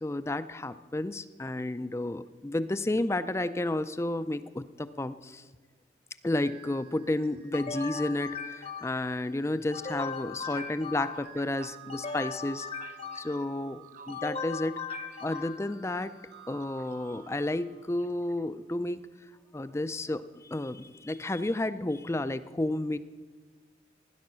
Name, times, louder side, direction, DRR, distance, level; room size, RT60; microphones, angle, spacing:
voice 1, 0.0-5.4 6.2-12.7 13.2-14.8 15.2-16.1 16.5-19.1 19.5-23.0, left 1 dB, 15° left, 13 dB, 0.4 m, -31 dB
sound 1, 6.2-18.6, right 9 dB, 60° right, 1.3 m, -53 dB
sound 2, 7.5-9.2 9.7-11.4 11.9-13.5 14.1-15.8, left 5 dB, 35° left, 0.9 m, -38 dB
voice 2, 10.5-12.4 12.8-13.3 13.9-14.2 14.9-15.5 16.8-16.9, right 5 dB, 45° right, 10 dB, 0.8 m, -51 dB
16.5 x 10.5 x 6.2 m, 1.4 s
head